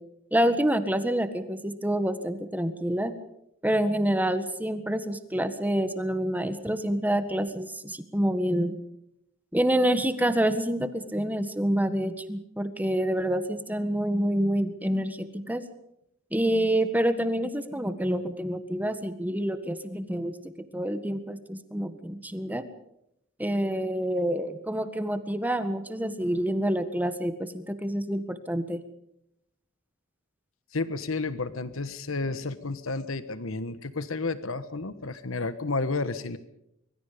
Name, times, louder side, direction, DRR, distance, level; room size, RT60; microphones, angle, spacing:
voice 1, 0.3-3.1 3.6-8.8 9.5-15.6 16.3-22.6 23.4-28.8, right 1 dB, 10° right, 10 dB, 1.6 m, -27 dB
voice 2, 30.7-36.4, left 3 dB, 80° left, 12 dB, 1.3 m, -31 dB
25.0 x 23.0 x 5.1 m, 0.81 s
head